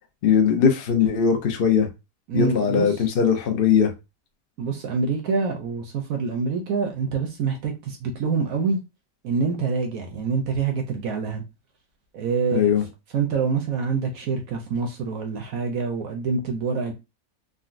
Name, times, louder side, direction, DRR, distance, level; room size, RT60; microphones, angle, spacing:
voice 1, 0.2-1.9 2.3-3.9 12.5-12.8, left 7 dB, 70° left, 0.5 m, -20 dB
voice 2, 2.3-2.9 4.6-8.8 9.2-11.4 12.1-12.7 13.1-16.9, right 5 dB, 65° right, 1.0 m, -26 dB
3.8 x 2.1 x 2.5 m
omnidirectional pair, 1.8 m